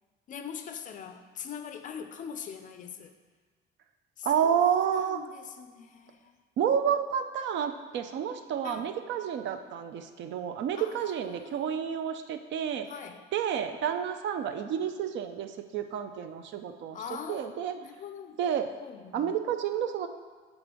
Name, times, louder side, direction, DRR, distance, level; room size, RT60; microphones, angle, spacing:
voice 1, 0.3-3.1 4.2-6.4 8.6-8.9 10.7-11.8 12.9-13.3 16.9-18.4 18.8-19.3, left 7 dB, 40° left, 8 dB, 0.4 m, -43 dB
voice 2, 4.2-5.2 6.6-12.9 13.3-17.0 17.3-17.7 18.4-18.7 19.1-20.1, right 8 dB, 65° right, 8 dB, 0.5 m, -30 dB
7.5 x 3.6 x 5.1 m, 1.5 s
cardioid pair, 175°, 21 cm